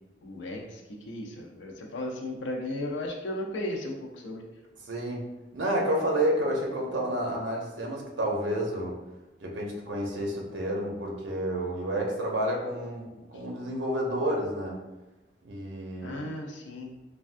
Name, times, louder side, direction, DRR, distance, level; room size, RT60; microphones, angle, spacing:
voice 1, 0.2-4.4 16.0-16.9, left 1 dB, 90° left, 0 dB, 0.5 m, -35 dB
voice 2, 4.9-5.2 5.5-9.0 9.4-14.8 15.4-16.2, right 1 dB, 75° right, -1 dB, 0.6 m, -30 dB
3.4 x 2.2 x 2.5 m, 1.1 s
head